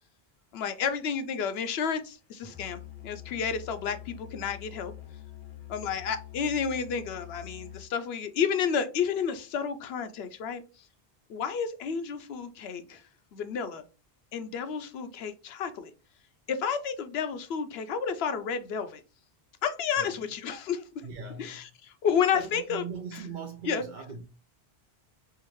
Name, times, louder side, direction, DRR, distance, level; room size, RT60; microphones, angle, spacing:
voice 1, 0.5-4.9 5.7-10.6 11.3-13.0 13.3-13.8 14.3-15.9 16.5-19.0 19.6-20.8 21.4-22.8 23.7-23.8, left 7 dB, 80° left, 0.8 m, -31 dB
Musical instrument, 2.4-7.9, left 13 dB, 50° left, 0.7 m, -45 dB
voice 2, 20.0-20.3 21.0-21.7 22.3-24.2, right 5 dB, 55° right, 0.7 m, -41 dB
4.7 x 2.5 x 3.0 m
omnidirectional pair, 1.0 m